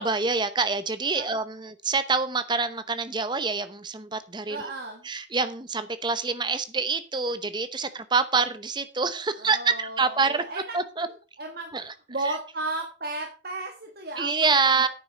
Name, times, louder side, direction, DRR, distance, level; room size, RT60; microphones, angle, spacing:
voice 1, 0.0-4.7 5.0-10.4 10.7-11.1 11.7-11.9 12.2-12.4 14.2-14.9, right 4 dB, 25° right, 12 dB, 0.8 m, -26 dB
voice 2, 4.5-5.0 9.4-10.8 11.4-11.7 12.1-14.9, right 2 dB, 55° right, 3 dB, 1.6 m, -34 dB
9.6 x 7.7 x 5.3 m, 0.35 s
head